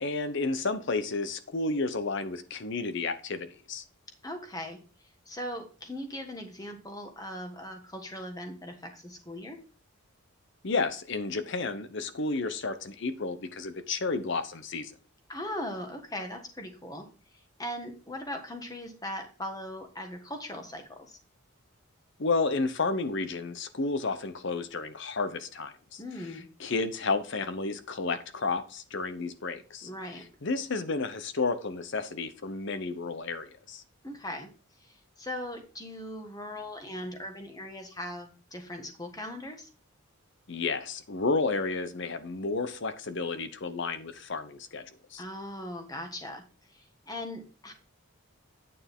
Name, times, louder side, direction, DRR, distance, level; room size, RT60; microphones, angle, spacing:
voice 1, 0.0-3.8 10.6-14.9 22.2-26.0 26.6-29.9 30.4-33.8 40.5-44.8 45.1-45.2, left 3 dB, 55° left, 0.8 m, -31 dB
voice 2, 4.2-4.8 5.2-9.6 15.3-17.0 17.3-21.2 26.0-26.5 29.8-30.2 34.0-34.5 34.8-39.7 45.2-46.4 46.7-47.7, left 1 dB, 15° left, 1.4 m, -39 dB
9.1 x 6.8 x 3.6 m
head